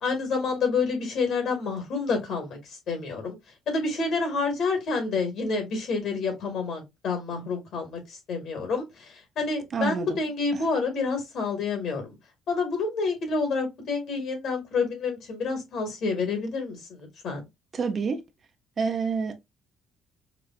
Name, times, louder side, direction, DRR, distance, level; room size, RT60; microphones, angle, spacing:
voice 1, 0.0-2.6 2.9-3.4 3.7-12.2 12.5-17.4, left 4 dB, 60° left, 1.8 m, -28 dB
voice 2, 9.7-10.2 10.5-10.6 17.7-18.2 18.8-19.3, right 5 dB, 35° right, 0.5 m, -27 dB
4.8 x 2.3 x 2.3 m
cardioid pair, 150°, 0 cm